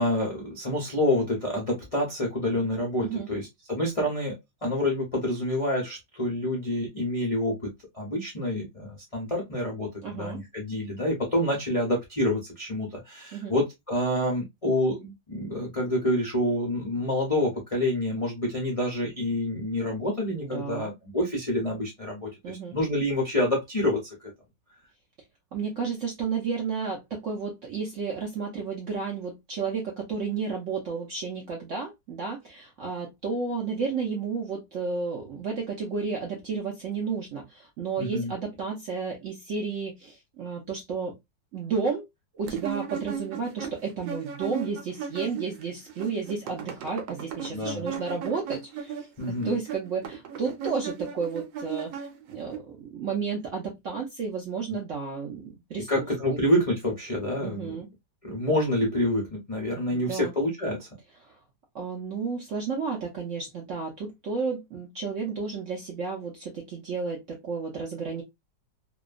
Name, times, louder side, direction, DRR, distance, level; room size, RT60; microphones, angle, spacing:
voice 1, 0.0-7.6 7.9-24.1 38.0-38.3 47.5-47.9 49.2-49.5 55.9-57.7 58.2-60.9, left 1 dB, 45° left, 0.4 m, -27 dB
voice 2, 10.0-10.4 13.3-13.5 20.4-20.9 22.4-22.8 25.5-41.2 41.5-42.0 42.3-56.0 56.3-56.4 57.4-57.9 59.9-60.3 61.2-61.3 61.7-68.2, right 5 dB, 65° right, 0.7 m, -32 dB
sound 1, 42.5-45.6 45.9-52.6, right 7 dB, 85° right, 1.3 m, -36 dB
2.8 x 2.2 x 2.3 m
omnidirectional pair, 1.9 m